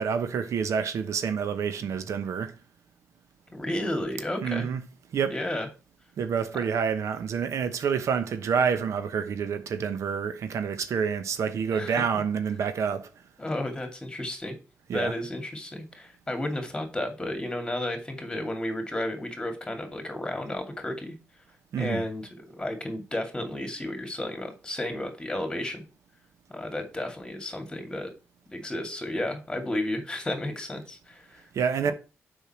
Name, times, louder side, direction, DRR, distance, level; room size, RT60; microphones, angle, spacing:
voice 1, 0.0-2.5 4.4-4.8 5.1-5.3 6.2-13.1 14.9-15.1 21.7-22.0 31.5-31.9, right 6 dB, 85° right, 0.9 m, -28 dB
voice 2, 3.5-4.7 5.3-5.7 11.7-12.0 13.4-14.5 14.9-21.2 21.8-22.3 22.6-25.8 26.5-28.1 28.5-31.5, left 1 dB, 15° left, 2.5 m, -32 dB
7.0 x 5.6 x 4.3 m
cardioid pair, 100°, 5 cm